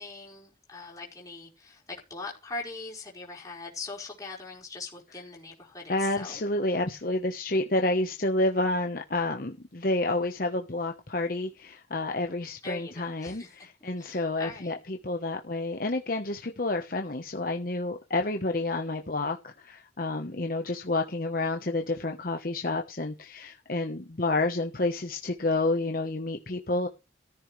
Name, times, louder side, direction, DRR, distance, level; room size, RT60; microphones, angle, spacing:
voice 1, 0.0-6.4 12.6-13.7 14.0-14.7, left 3 dB, 20° left, 5.0 m, -41 dB
voice 2, 5.9-26.9, left 2 dB, 50° left, 1.2 m, -29 dB
14.5 x 14.0 x 3.3 m
head